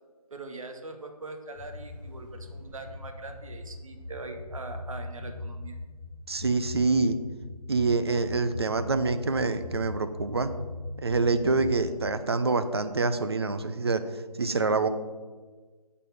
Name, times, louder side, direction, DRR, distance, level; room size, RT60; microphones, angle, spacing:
voice 1, 0.3-5.8, right 3 dB, 55° right, 5 dB, 1.0 m, -42 dB
sound 1, 1.5-11.9, left 2 dB, ahead, 2.5 m, -40 dB
voice 2, 6.3-7.2 7.7-10.5 11.0-14.0 14.4-14.9, right 3 dB, 40° right, 10 dB, 0.5 m, -26 dB
9.0 x 4.1 x 5.8 m, 1.4 s
figure-of-eight pair, 160°, 20 cm